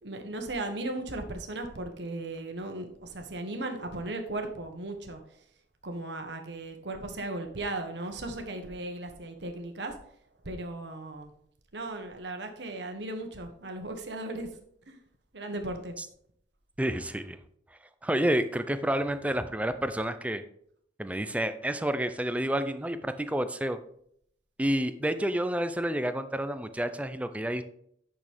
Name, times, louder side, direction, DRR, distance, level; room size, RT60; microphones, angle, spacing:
voice 1, 0.0-5.2 5.8-10.0 10.4-11.3 11.7-14.5 14.9-15.0 15.3-15.9, right 2 dB, 70° right, 5 dB, 1.3 m, -36 dB
voice 2, 16.8-17.4 18.0-20.4 21.0-23.8 24.6-27.6, right 1 dB, 10° right, 10 dB, 0.5 m, -29 dB
8.9 x 6.3 x 3.6 m, 0.68 s
head